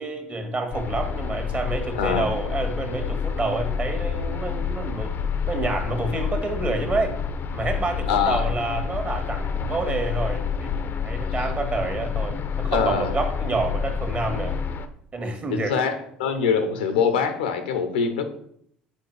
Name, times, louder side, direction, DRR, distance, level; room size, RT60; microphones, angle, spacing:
voice 1, 0.0-5.1 5.4-7.1 7.5-14.6 15.1-15.8, right 3 dB, 35° right, 5 dB, 1.7 m, -28 dB
sound 1, 0.7-14.9, left 6 dB, 45° left, 0.7 m, -28 dB
voice 2, 1.9-2.3 8.1-8.5 12.7-13.1 15.5-18.2, left 6 dB, 80° left, 8 dB, 0.8 m, -23 dB
7.2 x 4.4 x 4.8 m, 0.68 s
hypercardioid pair, 60°, 5 cm